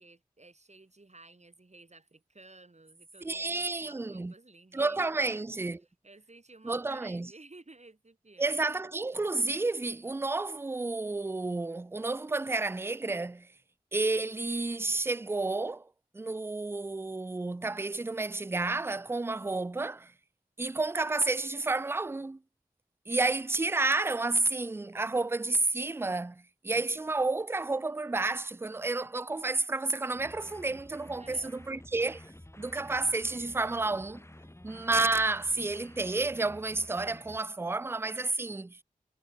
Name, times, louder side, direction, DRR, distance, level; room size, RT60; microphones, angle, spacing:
voice 1, 0.0-5.5 6.0-8.6 31.2-31.5, right 2 dB, 50° right, 2.6 m, -55 dB
voice 2, 3.2-4.3 4.7-5.8 6.6-7.3 8.4-13.5 13.9-15.9 16.1-20.1 20.6-22.4 23.1-32.2 32.6-34.2 34.6-38.8, right 3 dB, 15° right, 0.4 m, -31 dB
sound 1, 30.1-37.4, left 1 dB, 20° left, 1.9 m, -51 dB
wide cardioid pair, 40°, 15 cm